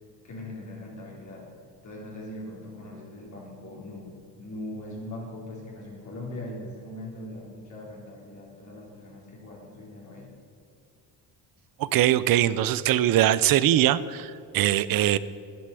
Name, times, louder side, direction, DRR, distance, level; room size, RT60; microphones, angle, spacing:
voice 1, 0.2-1.5 1.8-10.3, left 1 dB, 50° left, -3 dB, 2.7 m, -40 dB
voice 2, 11.8-15.2, right 12 dB, 65° right, 17 dB, 0.6 m, -22 dB
10.0 x 9.5 x 6.9 m, 2.4 s
cardioid pair, 110°, 37 cm